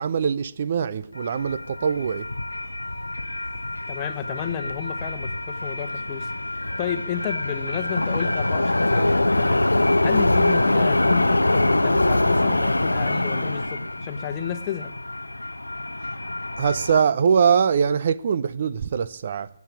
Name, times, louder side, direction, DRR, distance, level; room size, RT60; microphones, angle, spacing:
voice 1, 0.0-2.2 16.6-19.5, right 6 dB, 45° right, 0.6 m, -22 dB
sound 1, 1.2-17.0, left 1 dB, 85° left, 0.6 m, -24 dB
voice 2, 3.9-14.9, left 9 dB, 25° left, 1.2 m, -32 dB
16.0 x 8.4 x 8.9 m
figure-of-eight pair, 145°, 0 cm